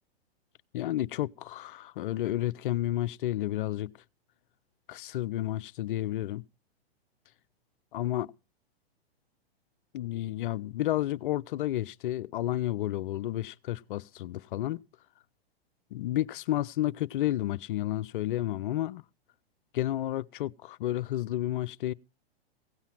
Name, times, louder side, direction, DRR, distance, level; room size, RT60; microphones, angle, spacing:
voice 1, 0.7-3.9 4.9-6.4 7.9-8.3 9.9-14.8 15.9-19.0 19.7-21.9, left 14 dB, 55° left, 0.6 m, -31 dB
16.5 x 5.6 x 7.4 m
hypercardioid pair, 115°, 31 cm